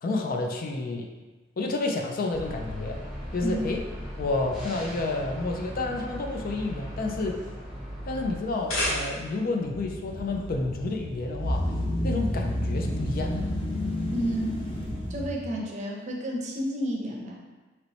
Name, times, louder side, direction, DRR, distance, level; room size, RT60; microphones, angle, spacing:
voice 1, 0.0-1.1 1.6-3.0 3.3-3.8 4.2-7.4 8.0-11.8 12.0-13.4, left 3 dB, 50° left, 2 dB, 0.4 m, -30 dB
sound 1, 2.3-8.4, equal, ahead, 0.8 m, -38 dB
sound 2, 8.4-9.5, left 1 dB, 90° left, 1.1 m, -30 dB
sound 3, 9.6-15.3, left 1 dB, 30° left, 0.8 m, -30 dB
voice 2, 14.1-14.7 15.1-17.4, right 1 dB, 40° right, -1 dB, 0.6 m, -31 dB
3.0 x 3.0 x 4.0 m, 1.2 s
head